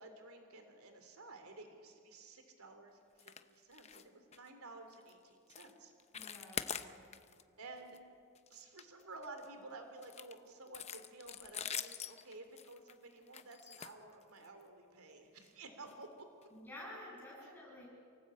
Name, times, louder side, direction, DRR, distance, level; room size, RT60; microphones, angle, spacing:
voice 1, 0.0-5.9 7.2-7.3 7.6-8.0 8.5-16.1 17.4-17.5, right 2 dB, 80° right, 6 dB, 3.2 m, -53 dB
sound 1, 3.2-3.4 3.7-4.0 4.3-4.5 4.9-5.1 5.5-5.7 6.0-7.4 7.8-8.0 8.4-9.5 10.0-14.6 15.4-15.5 15.9-16.0 16.4-16.5, left 8 dB, 30° left, 0.8 m, -45 dB
voice 2, 6.1-7.0 16.5-17.9, left 1 dB, 10° left, -4 dB, 7.9 m, -51 dB
28.0 x 18.5 x 8.7 m, 2.4 s
head